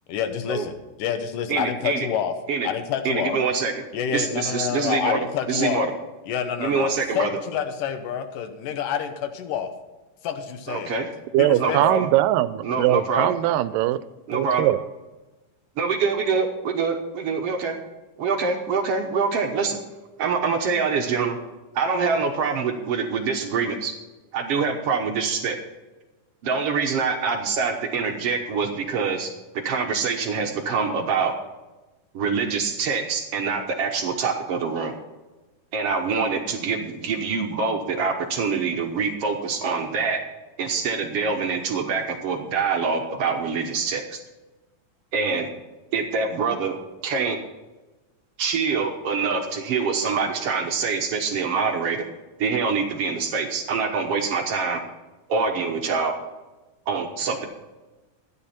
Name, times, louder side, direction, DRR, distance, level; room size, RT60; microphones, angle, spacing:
voice 1, 0.1-2.3 2.6-3.4 3.9-5.9 6.3-9.7 10.2-11.0 11.4-11.8, left 8 dB, 75° left, 2.6 m, -28 dB
voice 2, 1.5-2.1 2.5-2.7 3.0-3.8 4.1-5.9 6.6-7.4 10.7-11.1 11.6-12.1 12.6-13.3 14.3-14.7 15.8-16.9 17.2-17.8 18.2-19.8 20.2-21.4 21.7-23.9 24.3-25.6 26.4-31.3 32.1-34.9 35.7-40.2 40.6-44.2 45.1-45.5 45.9-46.8 47.0-47.4 48.4-52.0 52.4-54.8 55.3-56.1 56.9-57.5, right 5 dB, 65° right, 1.5 m, -25 dB
voice 3, 11.3-14.0 14.3-14.8, right 14 dB, 85° right, 2.2 m, -21 dB
13.5 x 9.8 x 4.3 m
omnidirectional pair, 3.9 m